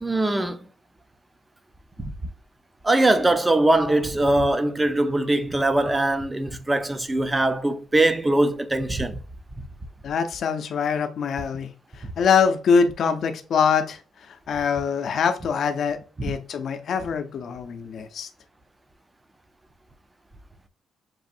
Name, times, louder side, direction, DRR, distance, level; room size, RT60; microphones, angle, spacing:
voice 1, 0.0-0.6 2.0-2.1 2.8-9.2 16.2-16.4, right 2 dB, 15° right, 0.5 m, -22 dB
voice 2, 10.0-11.7 12.2-14.0 14.3-18.3, left 6 dB, 60° left, 0.6 m, -23 dB
6.1 x 2.5 x 2.6 m
cardioid pair, 90°, 0 cm